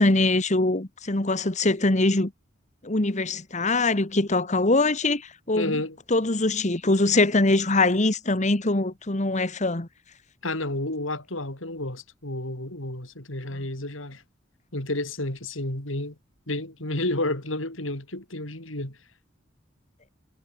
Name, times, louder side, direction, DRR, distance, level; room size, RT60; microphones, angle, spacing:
voice 1, 0.0-2.3 2.8-5.7 6.1-9.9, left 2 dB, 35° left, 1.6 m, -23 dB
voice 2, 5.5-6.0 10.4-14.2 14.7-16.2 16.5-19.0, left 2 dB, 85° left, 5.3 m, -31 dB
head